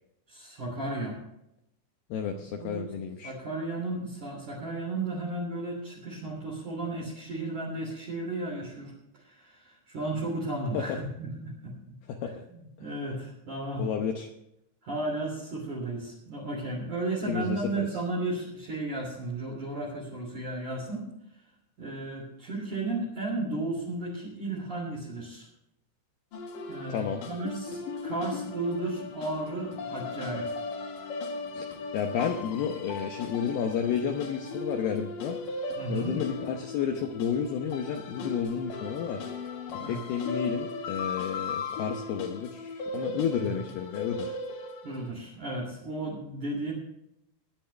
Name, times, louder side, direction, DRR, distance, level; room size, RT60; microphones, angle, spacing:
voice 1, 0.3-1.2 2.3-2.9 3.2-11.7 12.2-13.9 14.8-21.1 21.8-25.5 26.7-30.5 35.8-36.2 39.8-40.0 43.4-43.7 44.8-46.7, right 2 dB, 40° right, -4 dB, 4.0 m, -34 dB
voice 2, 2.1-3.3 10.7-11.0 12.1-12.4 13.8-14.3 17.3-17.6 26.9-27.2 31.5-31.7 31.9-35.4 35.9-39.2 39.9-44.4, left 7 dB, 85° left, 4 dB, 2.2 m, -31 dB
sound 1, 26.3-45.1, left 3 dB, 55° left, 2.8 m, -37 dB
19.5 x 10.5 x 3.3 m, 0.81 s
omnidirectional pair, 5.8 m